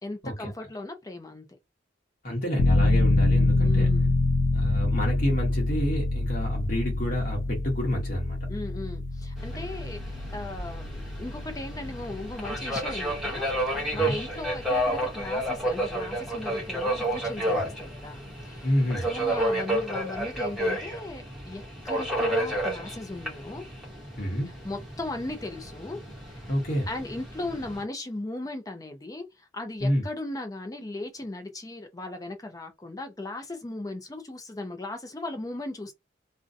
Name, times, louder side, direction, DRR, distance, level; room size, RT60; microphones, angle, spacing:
voice 1, 0.0-1.5 3.6-4.1 8.5-18.7 19.1-23.6 24.6-26.0 26.3-26.5 26.9-35.9, left 2 dB, 20° left, 0.5 m, -37 dB
voice 2, 2.2-3.9 4.5-8.4 13.9-14.2 17.5-17.6 18.6-19.1 24.2-24.5 26.5-26.9 29.8-30.0, equal, 50° left, 1.0 m, -28 dB
sound 1, 2.6-15.1 15.5-15.6, left 2 dB, 85° left, 0.4 m, -26 dB
Subway metro underground, 9.4-27.8, right 1 dB, 5° right, 1.0 m, -31 dB
2.5 x 2.2 x 2.5 m
head